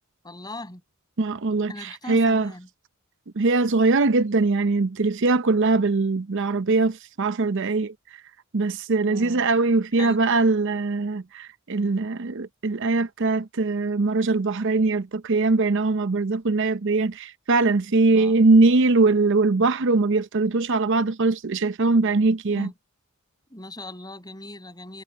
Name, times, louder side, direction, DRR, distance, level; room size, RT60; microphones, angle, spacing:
voice 1, 0.2-0.8 1.7-2.7 9.1-9.5 10.0-10.2 17.9-18.4 22.5-22.7 23.5-25.0, left 2 dB, 20° left, 7.3 m, -39 dB
voice 2, 1.2-2.5 3.4-8.2 8.5-22.7, right 3 dB, 60° right, 0.7 m, -21 dB
head